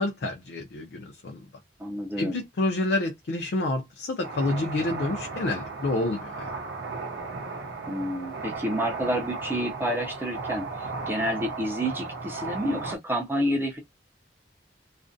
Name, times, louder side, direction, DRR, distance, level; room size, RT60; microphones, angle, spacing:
voice 1, 0.0-1.4 2.2-6.5, left 2 dB, 60° left, 0.4 m, -28 dB
voice 2, 1.8-2.4 7.9-13.8, equal, 10° right, 0.5 m, -29 dB
sound 1, 4.2-13.0, right 3 dB, 75° right, 0.6 m, -35 dB
2.4 x 2.1 x 2.5 m
head